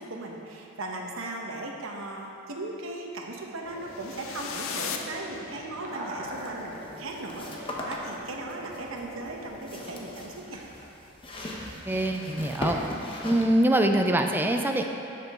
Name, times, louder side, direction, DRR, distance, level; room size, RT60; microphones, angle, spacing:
voice 1, 0.0-10.6, right 2 dB, 75° right, 0 dB, 1.0 m, -37 dB
sound 1, 3.6-10.3, right 1 dB, 35° right, 1.0 m, -42 dB
sound 2, 3.8-6.0, left 6 dB, 80° left, 0.6 m, -37 dB
sound 3, 6.2-13.5, left 1 dB, 25° left, 0.9 m, -39 dB
voice 2, 11.9-12.8 13.2-14.8, right 1 dB, 10° right, 4 dB, 0.4 m, -24 dB
12.5 x 5.9 x 3.6 m, 2.7 s
head